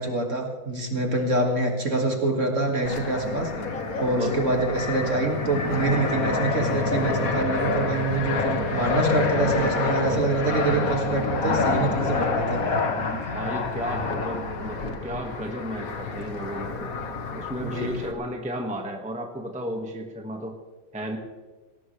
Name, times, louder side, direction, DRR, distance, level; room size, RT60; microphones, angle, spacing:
voice 1, 0.0-3.5 4.0-12.9 17.6-17.9, right 2 dB, 35° right, 2 dB, 2.5 m, -26 dB
Fixed-wing aircraft airplane, 2.9-18.1, left 4 dB, 45° left, 1.7 m, -27 dB
voice 2, 13.0-16.9 17.3-20.5 20.9-21.2, equal, 5° right, 2 dB, 1.5 m, -33 dB
20.0 x 18.5 x 3.4 m, 1.3 s
omnidirectional pair, 2.2 m